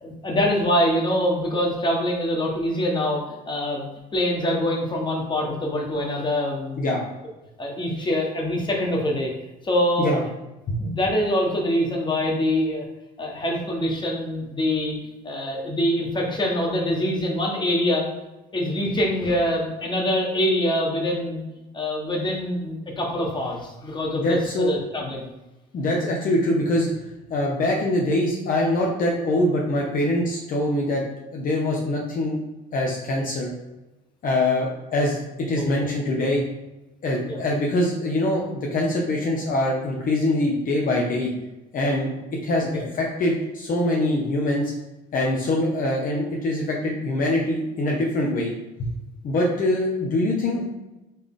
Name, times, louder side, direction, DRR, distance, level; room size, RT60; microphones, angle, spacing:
voice 1, 0.0-3.8 4.1-6.9 7.6-9.3 9.6-10.1 10.8-12.8 13.2-14.9 15.2-18.1 18.5-21.4 21.7-25.3 35.5-35.6 37.2-37.4 42.6-42.9, left 1 dB, 25° left, -1 dB, 1.3 m, -24 dB
voice 2, 24.2-24.7 25.7-26.9 27.3-31.0 31.3-32.4 32.7-33.5 34.2-35.2 35.5-36.4 37.0-41.3 41.7-42.1 42.4-44.7 45.1-48.5 48.8-48.9 49.2-50.6, left 1 dB, 50° left, -2 dB, 1.0 m, -23 dB
4.2 x 3.4 x 3.8 m, 1.0 s
cardioid pair, 95°, 19 cm